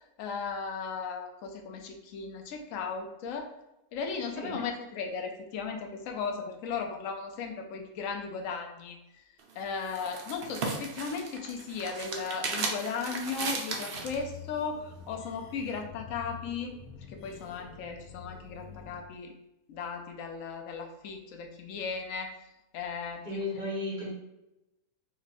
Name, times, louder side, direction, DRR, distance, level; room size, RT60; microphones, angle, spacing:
voice 1, 0.2-3.5 3.9-9.0 9.6-16.7 17.1-19.3 19.7-22.3 22.7-23.4, left 5 dB, 65° left, 4 dB, 1.0 m, -36 dB
sound 1, 9.4-14.2, right 4 dB, 55° right, 0.6 m, -36 dB
sound 2, 13.9-19.0, left 6 dB, 85° left, 1.2 m, -47 dB
voice 2, 23.2-24.1, left 2 dB, 35° right, -5 dB, 1.1 m, -34 dB
4.0 x 2.4 x 4.1 m, 0.91 s
omnidirectional pair, 1.6 m